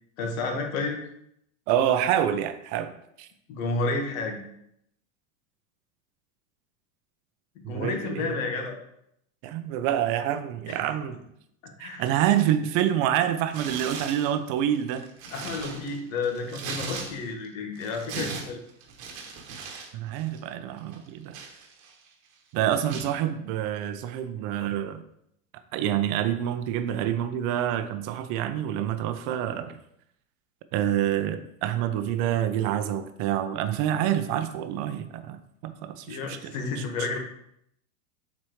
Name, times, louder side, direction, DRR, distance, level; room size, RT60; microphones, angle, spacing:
voice 1, 0.2-1.0 3.5-4.4 7.7-8.8 10.7-10.8 11.6-12.1 15.3-18.6 36.1-37.2, left 3 dB, 75° left, 2 dB, 1.7 m, -31 dB
voice 2, 1.7-3.3 7.6-8.4 9.4-11.2 11.8-15.1 19.9-21.4 22.5-25.0 25.7-29.8 30.7-37.1, right 10 dB, 50° right, 10 dB, 0.7 m, -27 dB
Tearing, 13.5-14.3 14.8-17.5 17.8-19.9 20.2-20.4 20.9-22.1 22.9-23.1, right 5 dB, 75° right, 1.5 m, -38 dB
7.7 x 4.2 x 3.1 m, 0.74 s
supercardioid pair, 125°, 41 cm